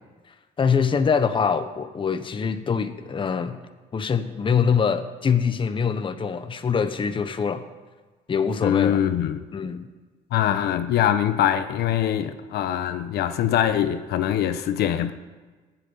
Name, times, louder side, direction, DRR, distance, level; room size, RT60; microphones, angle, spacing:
voice 1, 0.6-3.6 3.9-7.6 8.3-9.0 9.5-9.9, left 6 dB, 30° left, 9 dB, 1.0 m, -24 dB
voice 2, 8.6-9.4 10.3-15.1, left 10 dB, 70° left, 10 dB, 1.0 m, -23 dB
14.5 x 8.1 x 9.6 m, 1.3 s
cardioid pair, 110°, 17 cm